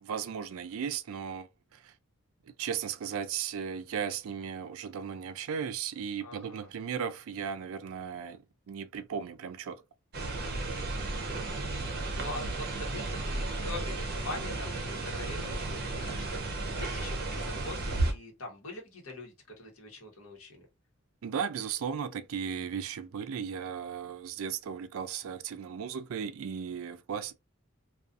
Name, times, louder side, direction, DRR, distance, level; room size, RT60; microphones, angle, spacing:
voice 1, 0.0-1.9 2.6-9.8 21.2-27.3, right 7 dB, 70° right, 0.3 m, -36 dB
voice 2, 6.2-6.7 11.1-11.5 12.1-20.6, left 2 dB, 70° left, 1.1 m, -43 dB
sound 1, 10.1-18.1, right 2 dB, 45° right, 0.7 m, -33 dB
2.4 x 2.3 x 2.4 m
head